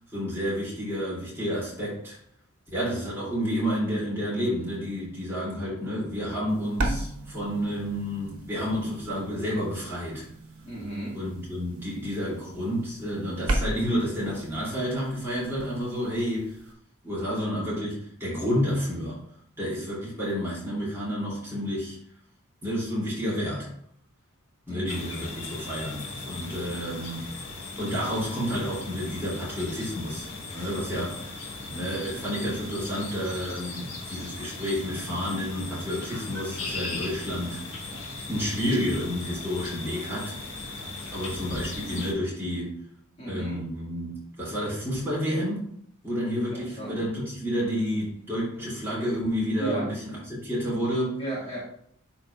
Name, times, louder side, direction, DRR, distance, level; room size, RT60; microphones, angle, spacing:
voice 1, 0.1-2.2 2.7-10.2 11.1-16.5 17.0-19.2 19.6-22.0 22.6-23.7 24.7-27.2 27.8-37.6 38.3-40.3 41.1-42.8 43.3-45.6 46.0-51.2, equal, 10° right, -8 dB, 2.6 m, -30 dB
sound 1, 6.5-16.7, right 1 dB, 80° right, 1.1 m, -36 dB
voice 2, 10.6-11.2 24.7-25.0 43.2-43.6 46.5-47.0 49.6-49.9 51.2-51.6, right 1 dB, 30° left, -7 dB, 1.9 m, -34 dB
sound 2, 24.9-42.1, left 3 dB, 65° left, 1.4 m, -38 dB
11.0 x 3.7 x 2.4 m, 0.66 s
head